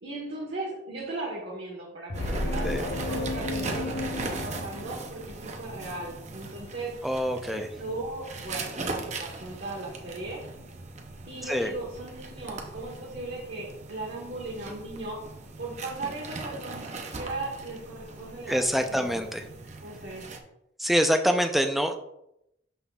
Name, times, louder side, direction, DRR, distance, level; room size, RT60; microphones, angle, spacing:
voice 1, 0.0-2.7 3.0-6.9 7.5-10.4 11.3-15.2 15.6-18.6 18.9-19.2 19.8-20.2, right 2 dB, 60° right, -4 dB, 1.3 m, -37 dB
sound 1, 2.1-5.6, left 1 dB, 60° left, 0.7 m, -32 dB
sound 2, 2.1-20.4, right 3 dB, 40° right, 0.6 m, -39 dB
voice 2, 7.0-7.7 11.5-11.7 18.5-19.4 20.8-22.0, equal, ahead, 5 dB, 0.4 m, -25 dB
11.5 x 3.8 x 2.3 m, 0.81 s
head